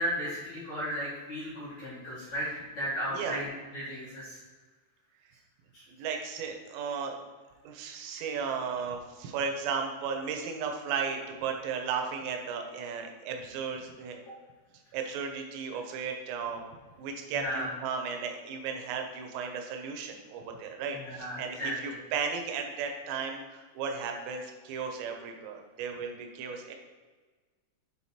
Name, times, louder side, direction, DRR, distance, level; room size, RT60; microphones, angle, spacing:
voice 1, 0.0-4.4 5.7-5.8 17.3-17.7 20.9-21.9, equal, 55° left, -10 dB, 2.2 m, -35 dB
voice 2, 3.1-3.4 5.9-7.1 7.6-14.2 14.9-16.6 17.0-26.7, right 6 dB, 80° right, 3 dB, 3.4 m, -35 dB
9.0 x 3.9 x 4.2 m, 1.4 s
omnidirectional pair, 5.8 m